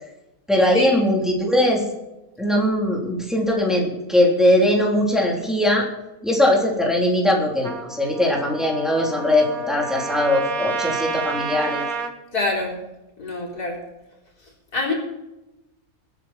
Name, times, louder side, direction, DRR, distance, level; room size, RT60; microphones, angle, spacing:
voice 1, 0.5-1.8 2.4-5.9 6.2-11.8, left 1 dB, ahead, -2 dB, 3.5 m, -20 dB
Trumpet, 7.6-12.2, right 5 dB, 65° right, 1.8 m, -30 dB
voice 2, 12.3-12.8 13.2-13.8 14.7-14.9, left 2 dB, 85° left, -2 dB, 4.5 m, -24 dB
21.0 x 9.9 x 4.5 m, 0.95 s
omnidirectional pair, 1.6 m